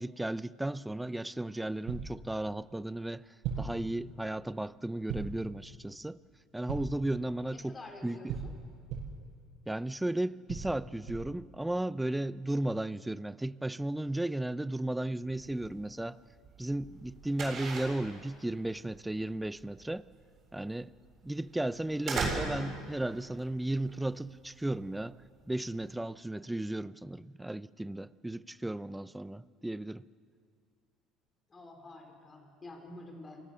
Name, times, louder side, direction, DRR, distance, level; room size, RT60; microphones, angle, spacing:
voice 1, 0.0-3.2 3.6-6.2 6.5-7.8 8.0-8.4 9.7-16.2 16.6-20.1 20.5-20.9 21.2-25.2 25.5-30.0, right 1 dB, 5° right, 0.5 m, -35 dB
sound 1, 1.9-2.2 3.4-3.8 5.1-5.5 6.7-7.0 8.3-9.2 10.5-11.4, right 6 dB, 70° right, 5.6 m, -38 dB
voice 2, 7.5-8.5 15.5-15.9 31.5-33.4, left 2 dB, 20° left, 4.1 m, -49 dB
sound 2, 15.2-25.9, right 4 dB, 40° right, 7.2 m, -40 dB
28.0 x 18.0 x 6.9 m
cardioid pair, 120°, 0 cm